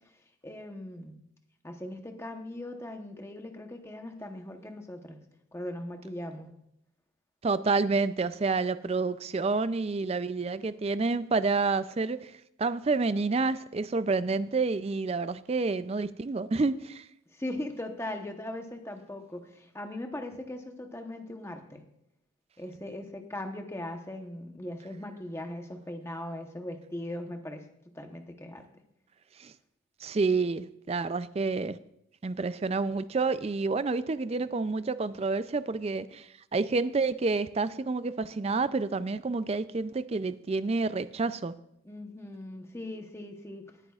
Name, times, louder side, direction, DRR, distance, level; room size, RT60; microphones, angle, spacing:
voice 1, 0.4-1.2 1.6-5.2 5.5-6.5 17.3-21.8 22.6-27.7 27.9-28.7 41.8-43.7, left 1 dB, 15° left, 4 dB, 0.9 m, -39 dB
voice 2, 7.4-12.3 12.6-17.1 29.4-29.5 30.0-31.8 32.2-41.5, right 3 dB, 30° right, 14 dB, 0.3 m, -29 dB
18.5 x 9.0 x 2.4 m, 0.78 s
head